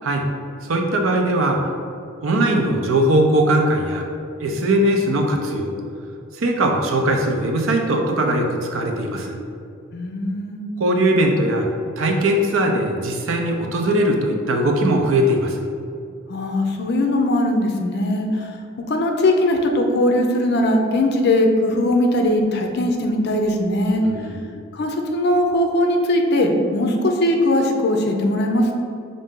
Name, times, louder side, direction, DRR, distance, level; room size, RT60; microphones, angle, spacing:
voice 1, 0.6-1.6 2.2-4.1 4.4-5.7 6.3-9.4 10.8-11.7 12.0-15.7 23.9-24.4, right 1 dB, 80° right, 2 dB, 0.6 m, -20 dB
voice 2, 9.9-10.7 16.3-18.6 18.9-24.0 24.7-28.8, left 1 dB, 55° left, 3 dB, 0.5 m, -20 dB
5.3 x 2.6 x 3.7 m, 2.5 s
head